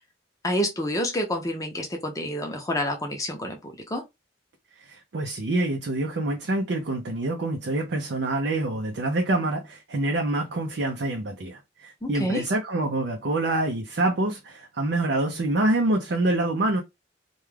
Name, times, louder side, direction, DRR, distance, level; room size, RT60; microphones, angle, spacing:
voice 1, 0.4-4.0 12.0-12.4, equal, 20° left, 0.6 m, -28 dB
voice 2, 4.8-16.8, right 2 dB, 65° right, 0.5 m, -26 dB
2.3 x 2.2 x 3.2 m
head